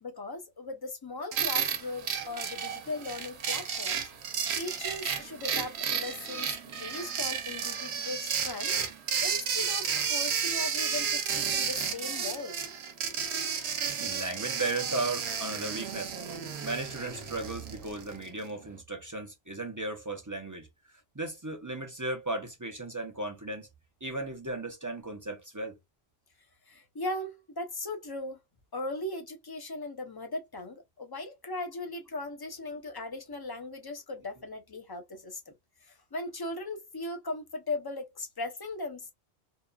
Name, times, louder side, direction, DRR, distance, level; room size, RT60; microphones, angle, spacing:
voice 1, 0.0-4.1 4.6-8.8 9.2-12.6 26.7-28.4 28.7-35.5 35.8-39.1, left 2 dB, 25° left, 0.6 m, -38 dB
sound 1, 1.3-18.3, right 7 dB, 85° right, 1.0 m, -32 dB
voice 2, 6.3-6.8 14.0-16.1 16.6-20.7 21.1-23.7 24.0-25.8, right 2 dB, 25° right, 0.5 m, -36 dB
2.8 x 2.3 x 2.2 m
omnidirectional pair, 1.1 m